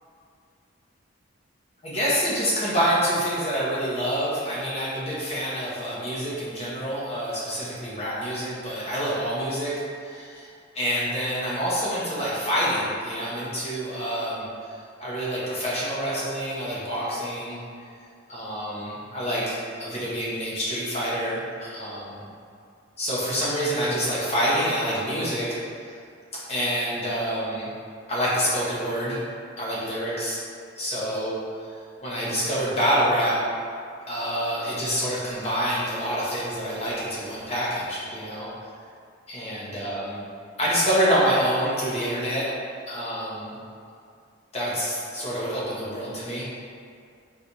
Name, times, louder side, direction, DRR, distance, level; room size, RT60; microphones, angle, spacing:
voice 1, 1.8-9.7 10.0-10.5 10.7-14.7 15.0-17.6 18.3-22.1 23.0-25.6 26.5-27.7 28.1-29.2 29.6-30.4 30.8-31.3 32.0-33.4 34.1-38.5 39.3-40.2 40.6-42.5 42.9-43.6 44.5-46.5, equal, 30° left, -8 dB, 0.8 m, -27 dB
3.9 x 2.6 x 2.9 m, 2.3 s
head